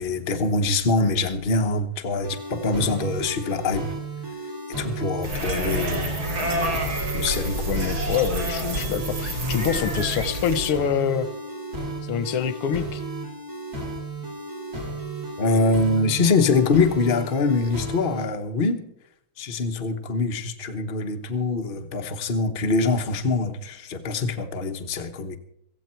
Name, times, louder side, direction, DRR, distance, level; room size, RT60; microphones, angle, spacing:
voice 1, 0.0-3.8 4.8-6.3 7.1-7.7 15.4-18.8 19.4-25.4, left 3 dB, 35° left, 5 dB, 1.0 m, -24 dB
sound 1, 2.2-18.2, right 2 dB, 45° right, 4.6 m, -34 dB
sound 2, 5.2-10.7, right 1 dB, 70° right, 3.3 m, -28 dB
voice 2, 7.7-11.3 12.1-13.0, left 8 dB, 90° left, 15 dB, 1.7 m, -26 dB
16.5 x 15.0 x 4.5 m, 0.75 s
omnidirectional pair, 2.3 m